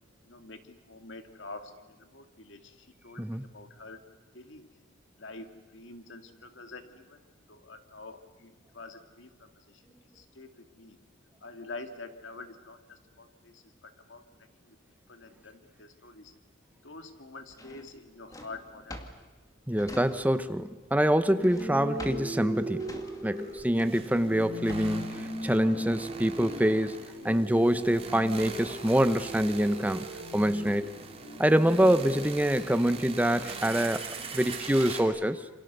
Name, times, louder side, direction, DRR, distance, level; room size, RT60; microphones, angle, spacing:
voice 1, 0.2-4.0 4.3-4.7 5.2-9.8 10.1-11.0 11.4-14.2 14.6-14.8 15.1-16.3 16.8-19.1, left 3 dB, 65° left, 2.1 m, -47 dB
Drawer open or close, 17.5-20.6 20.9-25.1, left 1 dB, 20° left, 2.1 m, -47 dB
voice 2, 19.7-22.9 23.2-30.1 30.3-30.9 31.4-34.0 34.3-35.4, equal, 10° right, 0.9 m, -25 dB
sound 1, 21.3-35.0, right 1 dB, 35° left, 7.9 m, -40 dB
sound 2, 21.7-21.8 23.4-35.0, right 5 dB, 30° right, 2.9 m, -43 dB
28.0 x 26.0 x 6.8 m
head